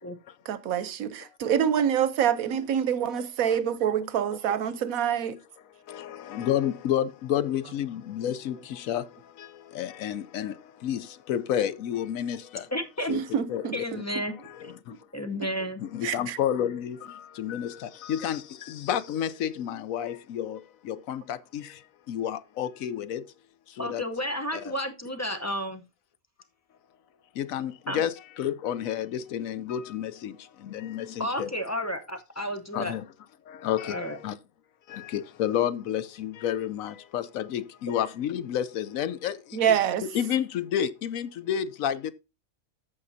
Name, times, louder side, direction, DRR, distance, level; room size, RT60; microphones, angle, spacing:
voice 1, 0.5-5.4 13.1-14.0 14.9-15.0 16.0-16.4 39.5-40.1, right 9 dB, 85° right, 1.2 m, -26 dB
voice 2, 3.1-3.6 5.9-12.7 13.1-13.2 13.5-13.8 14.4-15.0 15.8-23.3 23.7-24.0 24.5-24.6 27.3-31.5 32.7-33.0 33.5-34.4 34.9-39.6 40.0-42.1, left 10 dB, 75° left, 1.1 m, -31 dB
voice 3, 12.7-13.1 13.7-14.3 15.1-15.8 23.8-25.8 27.9-28.0 31.2-32.9 33.8-34.2, equal, 15° left, 0.7 m, -32 dB
14.0 x 5.7 x 2.7 m
omnidirectional pair, 1.4 m